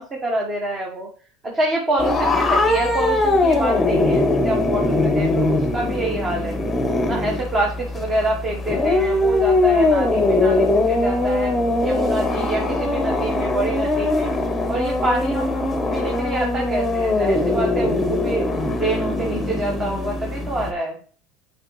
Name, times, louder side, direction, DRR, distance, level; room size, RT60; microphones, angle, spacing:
voice 1, 0.0-1.1 1.4-6.6 7.1-11.5 11.8-14.3 14.7-21.0, right 2 dB, 25° right, 0 dB, 1.3 m, -26 dB
sound 1, 2.0-20.7, left 2 dB, 10° left, 1.0 m, -21 dB
7.8 x 4.7 x 3.1 m, 0.43 s
supercardioid pair, 135°, 0 cm